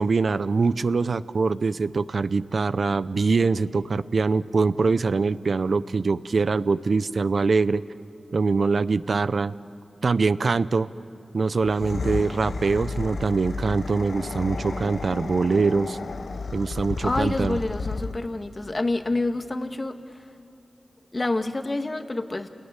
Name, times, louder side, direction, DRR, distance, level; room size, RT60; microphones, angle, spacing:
voice 1, 0.0-7.8 8.3-9.5 10.0-10.9 11.3-16.0 16.5-17.6, right 4 dB, 70° right, 15 dB, 0.6 m, -23 dB
sound 1, 11.6-18.4, left 4 dB, 75° left, 1.0 m, -32 dB
voice 2, 17.0-20.2 21.1-22.5, left 2 dB, 40° left, 7 dB, 1.6 m, -28 dB
28.5 x 19.5 x 9.8 m, 2.6 s
cardioid pair, 40°, 0 cm